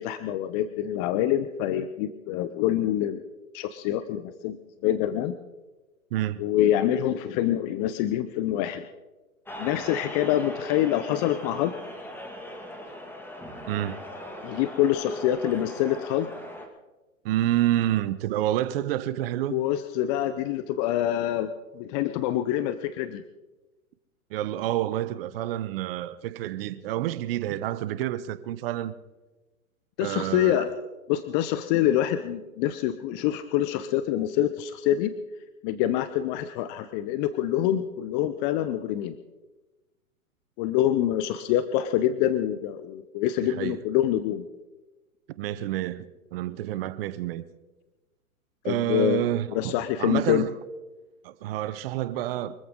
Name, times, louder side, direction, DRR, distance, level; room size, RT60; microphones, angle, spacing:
voice 1, 0.0-3.2 3.5-5.4 6.4-8.8 9.6-11.7 14.4-16.5 19.5-23.2 30.0-30.7 31.1-35.1 35.6-39.2 40.6-44.5 48.7-49.3 49.5-50.4, left 12 dB, 30° left, 0.7 m, -26 dB
sound 1, 9.4-16.7, equal, 5° left, 2.2 m, -40 dB
voice 2, 13.7-14.0 17.2-19.6 24.3-28.9 30.0-30.6 43.4-43.8 45.4-47.4 48.6-49.7 50.0-50.5 51.2-52.5, right 13 dB, 40° right, 0.9 m, -28 dB
24.0 x 14.5 x 3.8 m
hypercardioid pair, 120°, 42 cm